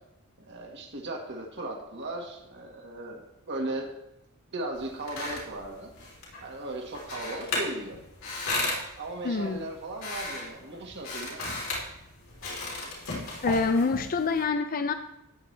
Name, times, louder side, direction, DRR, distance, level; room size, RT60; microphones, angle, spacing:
voice 1, 0.4-3.9 4.5-5.9 6.4-8.0 9.0-11.4, right 2 dB, 55° right, 0 dB, 1.7 m, -37 dB
sound 1, 4.7-14.4, left 2 dB, 70° left, 3.3 m, -36 dB
voice 2, 9.2-9.7 13.4-14.9, left 4 dB, 40° left, 8 dB, 0.5 m, -26 dB
13.5 x 8.8 x 3.3 m, 0.87 s
head